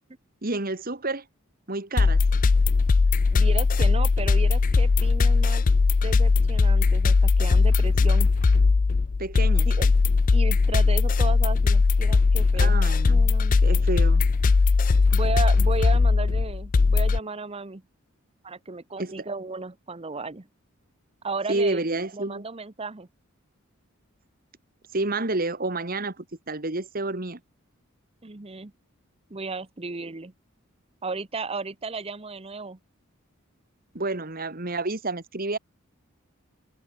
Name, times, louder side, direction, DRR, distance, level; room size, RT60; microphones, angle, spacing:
voice 1, 0.4-1.2 1.7-2.2 9.2-9.7 12.5-13.3 13.6-14.2 19.0-19.3 21.5-22.4 24.9-27.4 33.9-35.6, right 2 dB, 45° right, 2.1 m, -29 dB
sound 1, 2.0-17.2, left 4 dB, 40° left, 0.4 m, -19 dB
voice 2, 3.3-5.6 6.0-8.3 9.7-9.9 10.3-12.8 13.1-13.6 15.1-17.8 18.4-20.5 21.2-21.8 22.1-23.1 28.2-28.7 29.3-30.3 31.0-32.8, right 3 dB, 30° right, 0.9 m, -34 dB
head